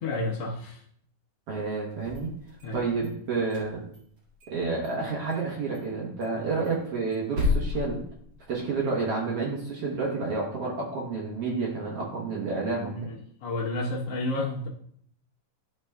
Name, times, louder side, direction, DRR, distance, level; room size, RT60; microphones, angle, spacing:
voice 1, 0.0-0.8 2.6-2.8 12.8-13.1 13.4-14.7, left 2 dB, 85° left, -4 dB, 1.3 m, -30 dB
voice 2, 1.5-2.3 2.7-3.8 4.5-8.0 8.5-12.9, right 4 dB, 85° right, -3 dB, 1.3 m, -30 dB
sound 1, 1.9-3.1 3.4-4.6 4.8-4.9 5.3-5.5 5.7-5.8 6.2-8.8, left 3 dB, 45° right, 1.9 m, -32 dB
10.5 x 5.0 x 2.2 m, 0.65 s
omnidirectional pair, 4.3 m